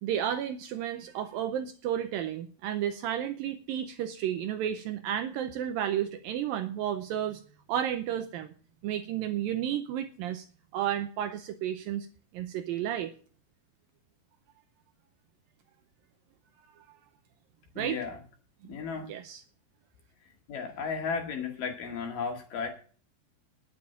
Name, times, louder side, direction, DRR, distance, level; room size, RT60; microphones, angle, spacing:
voice 1, 0.0-7.4 7.7-8.5 8.8-10.5 10.7-12.1 12.3-13.1 17.8-18.0 19.1-19.4, right 10 dB, 75° right, 7 dB, 2.2 m, -32 dB
voice 2, 17.8-18.2 18.7-19.1 20.5-22.7, left 5 dB, 60° left, 3 dB, 3.5 m, -34 dB
10.0 x 7.4 x 8.6 m, 0.41 s
omnidirectional pair, 4.7 m